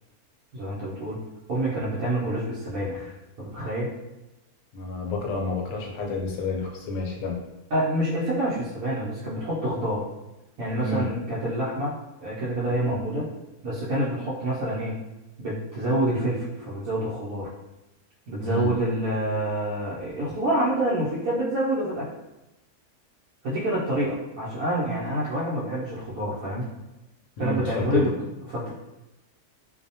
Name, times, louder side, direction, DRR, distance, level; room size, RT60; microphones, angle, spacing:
voice 1, 0.5-1.2 1.5-3.9 7.7-10.0 10.6-11.9 12.2-13.3 13.6-15.0 15.4-17.5 18.3-22.1 23.4-26.7 27.4-28.1 28.5-28.7, right 1 dB, 80° right, -9 dB, 1.1 m, -27 dB
voice 2, 4.7-7.4 10.8-11.1 18.4-18.7 27.4-28.2, left 2 dB, 75° left, 0 dB, 1.0 m, -29 dB
2.7 x 2.0 x 2.6 m, 0.98 s
omnidirectional pair, 1.6 m